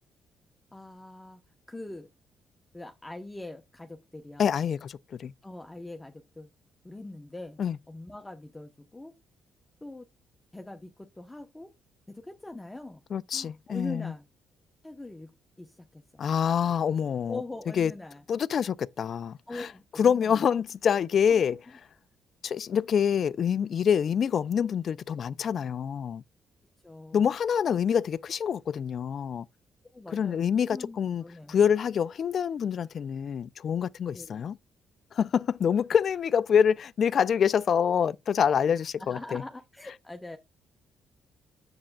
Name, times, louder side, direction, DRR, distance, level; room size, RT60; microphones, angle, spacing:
voice 1, 0.7-1.4 1.7-2.1 2.7-4.5 5.4-6.5 6.8-7.6 7.9-9.1 9.8-10.1 10.5-11.7 12.1-13.0 13.3-14.3 14.8-15.3 15.6-16.3 17.3-18.2 19.5-20.3 21.3-21.4 26.8-27.3 29.9-31.6 34.1-34.4 39.0-40.4, left 2 dB, 10° left, 0.8 m, -42 dB
voice 2, 4.4-5.3 7.6-7.8 13.1-14.1 16.2-17.4 17.8-17.9 18.3-19.7 20.0-21.6 22.4-26.2 27.1-29.5 30.1-31.2 31.5-34.6 35.1-39.4, left 7 dB, 55° left, 0.4 m, -26 dB
7.6 x 7.1 x 2.2 m
cardioid pair, 90°, 0 cm